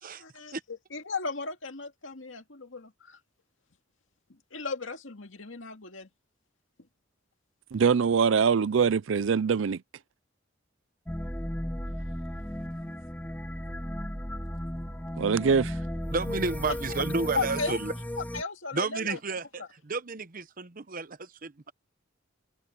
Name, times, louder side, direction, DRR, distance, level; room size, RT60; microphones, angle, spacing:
voice 1, 0.2-3.2 4.5-6.1 16.7-17.0 17.3-17.8 18.2-19.2 19.6-19.7, left 4 dB, 75° left, 2.3 m, -35 dB
voice 2, 7.7-9.8 15.2-15.8, right 6 dB, 70° right, 0.5 m, -23 dB
sound 1, 11.1-18.4, equal, 10° left, 3.3 m, -35 dB
voice 3, 16.1-17.9 18.7-21.7, right 4 dB, 45° right, 0.9 m, -32 dB
open air
head